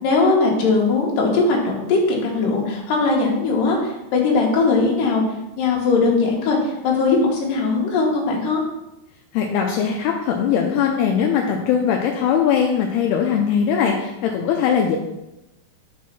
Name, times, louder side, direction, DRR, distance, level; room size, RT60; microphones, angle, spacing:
voice 1, 0.0-5.2 5.6-8.6, left 3 dB, 65° left, -2 dB, 2.7 m, -19 dB
voice 2, 9.3-15.0, left 7 dB, 85° left, 1 dB, 2.5 m, -20 dB
6.1 x 4.6 x 5.7 m, 0.92 s
omnidirectional pair, 4.8 m